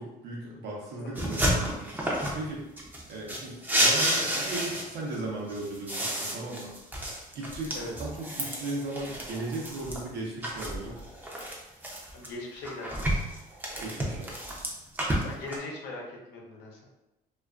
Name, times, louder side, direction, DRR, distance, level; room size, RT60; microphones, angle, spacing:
voice 1, 0.0-2.7 3.1-6.7 7.3-11.0 13.8-14.3, right 2 dB, 80° right, -2 dB, 0.8 m, -37 dB
sound 1, 1.2-2.4 2.8-5.1 5.5-10.0 10.4-12.3 12.6-15.6, right 1 dB, 10° right, 0.5 m, -30 dB
voice 2, 12.1-13.3 15.2-16.8, left 2 dB, 80° left, -1 dB, 0.7 m, -40 dB
2.4 x 2.3 x 2.4 m, 0.95 s
cardioid pair, 110°, 17 cm